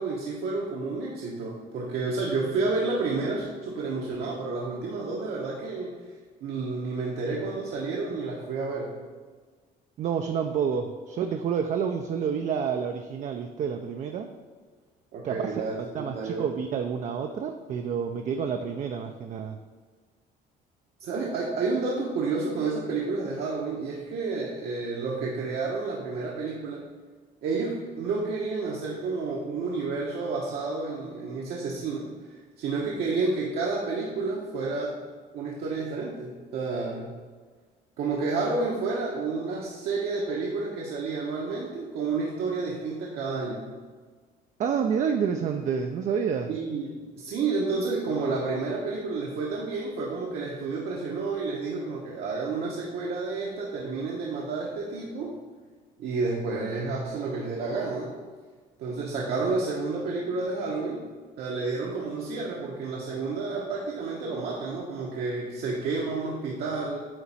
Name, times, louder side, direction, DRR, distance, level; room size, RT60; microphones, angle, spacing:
voice 1, 0.0-6.0 6.4-9.0 15.1-16.4 21.0-26.8 27.4-32.1 32.6-35.0 35.3-37.1 38.0-43.7 46.5-55.4 56.0-58.1 58.8-61.0 61.4-67.0, right 3 dB, 70° right, -3 dB, 1.0 m, -30 dB
voice 2, 10.0-14.3 15.2-15.6 15.9-19.6 44.6-46.5, right 7 dB, 45° right, 5 dB, 0.4 m, -29 dB
8.6 x 2.9 x 4.2 m, 1.5 s
cardioid pair, 110°, 17 cm